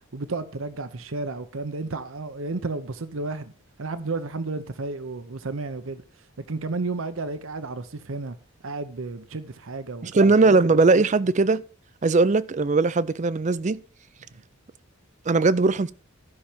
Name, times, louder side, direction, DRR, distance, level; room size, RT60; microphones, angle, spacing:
voice 1, 0.1-3.5 3.8-6.0 6.5-8.4 8.6-10.1 10.4-10.5, right 3 dB, 75° right, 0.8 m, -32 dB
voice 2, 10.0-11.6 12.0-13.8 15.3-15.9, right 3 dB, 35° right, 0.4 m, -19 dB
13.0 x 5.8 x 5.0 m
head